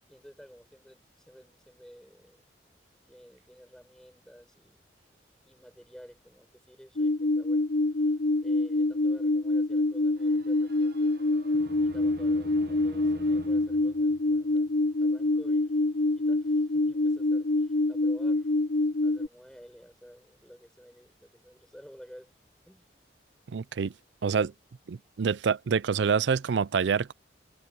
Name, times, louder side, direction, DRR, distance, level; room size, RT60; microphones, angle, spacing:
voice 1, 0.0-2.4 3.0-4.9 5.4-11.2 11.8-14.7 15.0-18.5 19.0-22.3 22.7-22.9, equal, 5° left, 6.5 m, -52 dB
sound 1, 7.0-19.3, left 2 dB, 75° left, 1.0 m, -26 dB
sound 2, 10.2-14.9, right 2 dB, 55° right, 1.0 m, -48 dB
voice 2, 23.5-23.9 24.2-24.5 24.9-27.1, right 6 dB, 75° right, 0.4 m, -26 dB
head